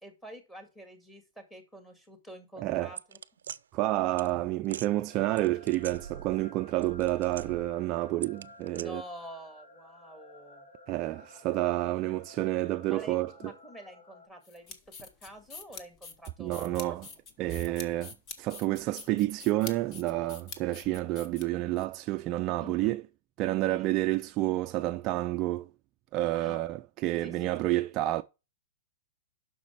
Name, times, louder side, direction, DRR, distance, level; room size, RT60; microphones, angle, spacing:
voice 1, 0.0-3.2 8.7-10.7 12.9-14.8 15.0-17.0 17.7-18.0 22.6-22.9 23.6-23.8 26.3-26.6 27.2-27.4 27.7-27.8, right 1 dB, 10° left, 2.1 m, -48 dB
voice 2, 2.6-2.9 3.7-9.0 10.9-13.3 16.4-17.1 17.4-18.1 18.4-23.0 23.4-25.7 26.1-28.2, right 16 dB, 30° right, 0.4 m, -29 dB
sound 1, 3.0-3.6 4.2-4.3 4.6-4.9 5.4-6.5 6.7-7.7 8.2-8.8, right 8 dB, 90° right, 0.5 m, -42 dB
sound 2, 5.1-14.3, left 2 dB, 70° left, 2.4 m, -54 dB
sound 3, 14.4-21.8, left 5 dB, 30° left, 1.2 m, -46 dB
7.2 x 5.9 x 6.0 m
hypercardioid pair, 145°, 0 cm